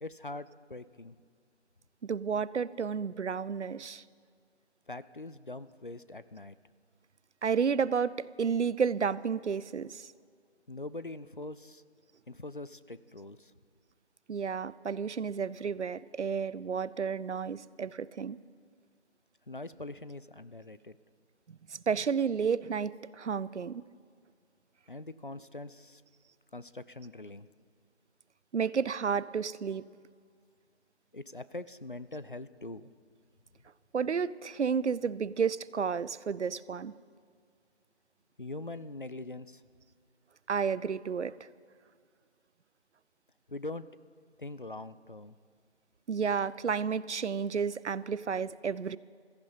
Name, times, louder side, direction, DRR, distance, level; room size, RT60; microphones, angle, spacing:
voice 1, 0.0-1.2 4.9-6.5 10.7-11.8 12.3-13.5 19.5-21.0 24.9-26.0 26.5-27.5 31.1-32.9 38.4-39.6 43.5-43.9 44.4-45.4, left 2 dB, 50° left, 15 dB, 0.5 m, -42 dB
voice 2, 2.0-4.0 7.4-10.1 14.3-18.4 21.5-23.8 28.5-29.8 33.9-36.9 40.5-41.4 46.1-49.0, right 6 dB, 85° right, 19 dB, 0.6 m, -31 dB
16.0 x 14.0 x 5.6 m, 2.1 s
figure-of-eight pair, 175°, 34 cm